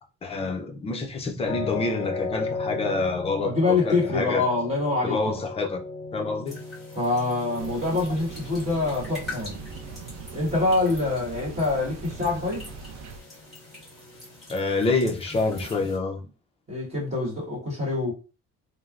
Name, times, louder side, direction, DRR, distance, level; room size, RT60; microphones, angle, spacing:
voice 1, 0.2-4.4 5.0-5.8 6.1-6.6 14.5-16.3, left 3 dB, 20° left, 0.3 m, -27 dB
sound 1, 1.5-14.5, left 4 dB, 50° left, 0.7 m, -37 dB
voice 2, 3.4-5.4 6.9-9.5 10.3-12.7 16.7-18.1, left 3 dB, 20° right, 1.2 m, -25 dB
sound 2, 6.5-16.0, left 2 dB, ahead, 1.5 m, -45 dB
sound 3, 7.6-13.2, right 5 dB, 60° right, 0.4 m, -41 dB
3.1 x 2.1 x 2.3 m
cardioid pair, 170°, 29 cm